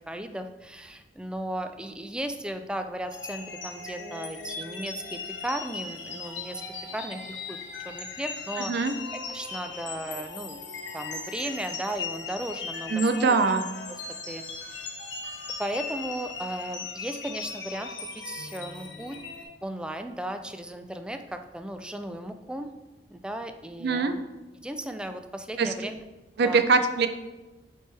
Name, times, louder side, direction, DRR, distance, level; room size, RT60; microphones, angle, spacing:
voice 1, 0.1-6.6 6.9-7.6 7.8-8.7 9.1-10.6 10.9-13.4 14.3-14.4 14.7-14.8 15.6-17.9 18.1-19.2 19.6-22.7 23.1-24.2 24.6-26.0 26.4-26.6, right 1 dB, 5° right, 7 dB, 0.3 m, -35 dB
sound 1, 3.1-19.4, left 4 dB, 75° left, 0.9 m, -38 dB
voice 2, 8.6-8.9 12.9-13.6 23.8-24.1 25.6-25.7 26.4-27.1, right 4 dB, 65° right, 9 dB, 0.5 m, -23 dB
8.3 x 3.3 x 3.4 m, 1.1 s
head